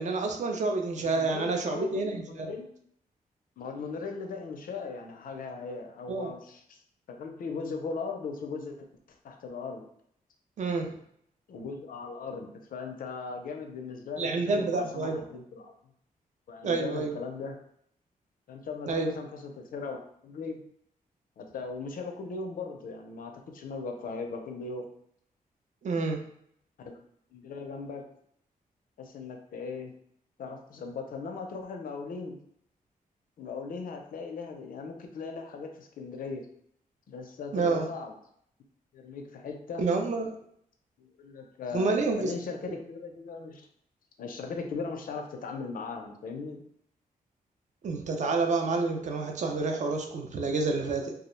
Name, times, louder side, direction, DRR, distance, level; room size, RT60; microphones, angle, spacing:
voice 1, 0.0-2.5 6.1-6.3 10.6-10.9 14.2-15.2 16.6-17.2 18.9-19.1 25.8-26.2 37.5-37.9 39.8-40.3 41.7-42.3 47.8-51.1, right 3 dB, 50° right, 3 dB, 0.4 m, -28 dB
voice 2, 1.0-2.7 3.6-6.8 7.1-8.9 9.2-9.8 11.5-15.7 16.5-17.6 18.5-20.0 20.2-20.6 21.4-24.9 26.8-27.0 27.3-28.0 29.0-29.9 30.4-32.4 33.4-36.5 37.1-38.1 38.9-39.8 41.0-43.7 44.2-46.6, left 4 dB, 70° left, 4 dB, 0.4 m, -38 dB
2.3 x 2.1 x 3.0 m, 0.69 s
wide cardioid pair, 130°, 15 cm